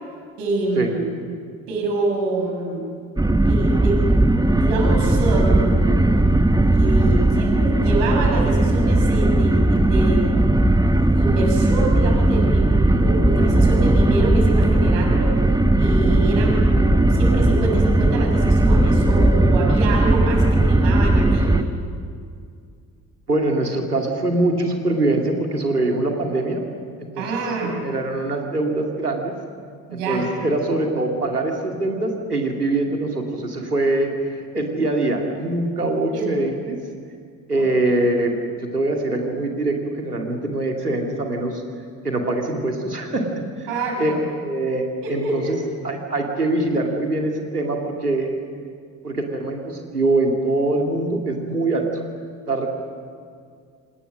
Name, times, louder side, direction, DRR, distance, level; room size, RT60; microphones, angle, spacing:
voice 1, 0.4-1.2 1.7-2.8 3.4-4.0 4.5-6.0 6.7-10.3 11.1-15.3 15.8-21.6 27.2-27.8 29.9-30.2 36.1-36.4 37.5-37.7 43.7-44.2 45.0-45.6, right 2 dB, 65° right, 0 dB, 6.9 m, -26 dB
sound 1, 3.2-21.6, right 1 dB, 10° right, 1.5 m, -17 dB
voice 2, 23.3-26.6 27.0-27.3 27.8-29.3 29.9-36.8 37.5-38.4 38.7-41.6 42.0-43.2 44.0-44.8 45.1-45.6 45.8-48.3 49.0-51.8 52.5-52.7, right 2 dB, 90° right, 2 dB, 2.4 m, -23 dB
27.5 x 26.5 x 6.3 m, 2.2 s
figure-of-eight pair, 50°, 45 cm